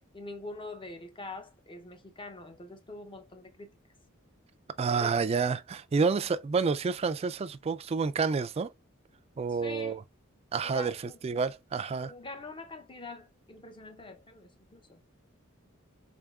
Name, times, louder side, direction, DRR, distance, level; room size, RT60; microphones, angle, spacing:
voice 1, 0.1-3.7 4.9-5.1 9.6-10.0 10.6-11.2 12.0-15.0, left 2 dB, 25° left, 0.7 m, -44 dB
voice 2, 4.8-8.7 9.4-10.0 10.5-11.0 11.2-12.1, right 5 dB, 30° right, 0.3 m, -29 dB
3.6 x 3.5 x 2.3 m
head